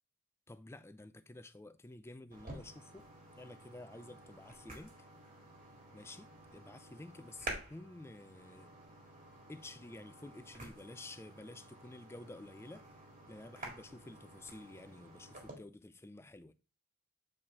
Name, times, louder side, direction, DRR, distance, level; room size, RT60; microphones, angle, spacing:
voice 1, 0.5-3.1 3.4-5.0 5.9-8.7 9.5-12.8 13.3-16.5, left 2 dB, 10° left, 0.3 m, -51 dB
sound 1, 2.3-15.5, right 2 dB, 35° right, 1.9 m, -51 dB
7.7 x 4.4 x 3.6 m
head